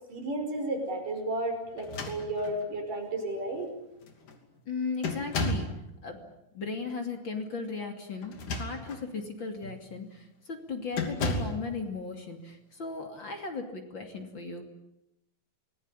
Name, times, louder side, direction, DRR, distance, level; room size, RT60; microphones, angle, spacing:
voice 1, 0.1-3.7, right 1 dB, 80° right, 4 dB, 6.9 m, -33 dB
sound 1, 1.8-2.7 3.6-3.7 4.0-4.4 5.0-5.8 8.2-9.1 9.6-9.8 10.9-11.6, left 2 dB, 70° left, 4.3 m, -33 dB
voice 2, 4.7-5.7 6.0-6.2 6.5-14.6, left 4 dB, 35° left, 5 dB, 3.3 m, -36 dB
26.5 x 20.5 x 9.9 m, 0.88 s
omnidirectional pair, 3.7 m